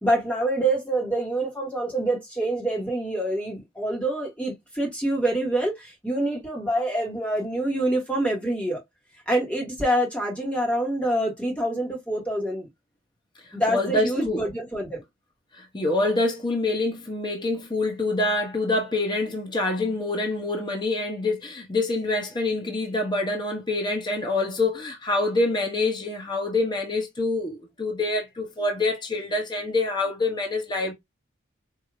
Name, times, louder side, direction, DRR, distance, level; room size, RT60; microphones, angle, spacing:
voice 1, 0.0-8.8 9.3-12.7 13.5-15.0, right 1 dB, 5° left, 1.4 m, -26 dB
voice 2, 13.4-14.4 15.5-30.9, left 2 dB, 20° left, 0.8 m, -26 dB
4.7 x 2.7 x 2.4 m
head